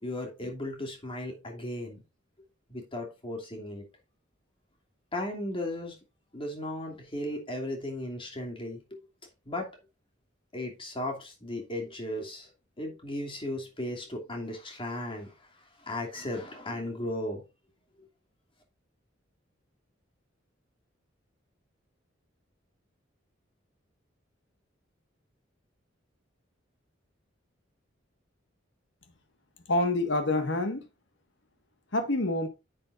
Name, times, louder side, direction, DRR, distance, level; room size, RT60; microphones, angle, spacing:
voice 1, 0.0-2.0 2.7-3.8 5.1-5.9 6.3-9.0 9.5-9.7 10.5-12.5 12.8-15.3 15.9-17.4, left 1 dB, 30° left, 2.8 m, -36 dB
voice 2, 29.7-30.8 31.9-32.5, left 2 dB, 70° left, 1.7 m, -27 dB
10.5 x 7.7 x 2.6 m
head